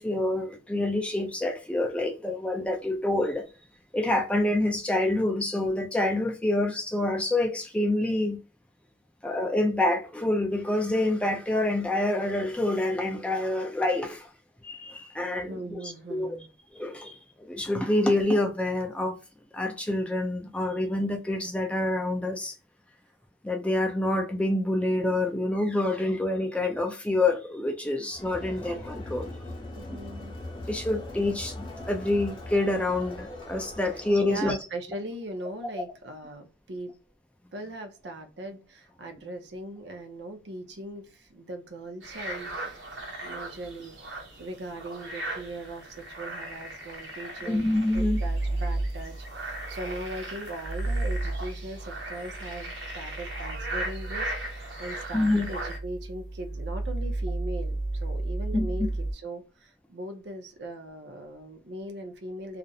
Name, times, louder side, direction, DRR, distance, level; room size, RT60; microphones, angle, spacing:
voice 1, 0.0-3.5 3.9-8.4 9.2-14.3 14.6-16.4 16.7-19.2 19.5-22.5 23.4-29.3 30.5-34.6 47.4-48.2 55.1-55.5 58.5-58.6, left 1 dB, 5° left, 0.3 m, -27 dB
voice 2, 15.4-16.5 29.7-30.4 34.2-37.0 37.5-42.7 43.2-62.6, right 1 dB, 70° right, 0.6 m, -39 dB
Crowd, 28.1-34.4, left 1 dB, 25° left, 0.8 m, -40 dB
sound 1, 42.0-55.8, right 1 dB, 90° right, 1.0 m, -39 dB
sound 2, 47.9-59.1, right 2 dB, 60° left, 0.6 m, -33 dB
2.4 x 2.1 x 2.6 m
head